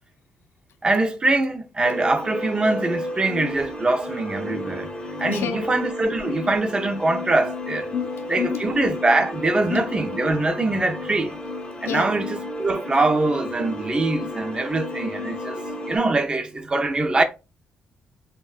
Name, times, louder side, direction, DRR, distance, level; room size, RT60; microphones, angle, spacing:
voice 1, 0.8-7.9 8.3-11.4 11.8-17.2, right 2 dB, 25° right, 0.4 m, -23 dB
sound 1, 1.8-16.0, left 1 dB, 25° left, 0.5 m, -32 dB
voice 2, 5.3-5.7 7.9-8.6 9.7-9.9 11.9-12.1, left 9 dB, 75° left, 0.4 m, -28 dB
2.8 x 2.1 x 2.3 m
cardioid pair, 105°, 4 cm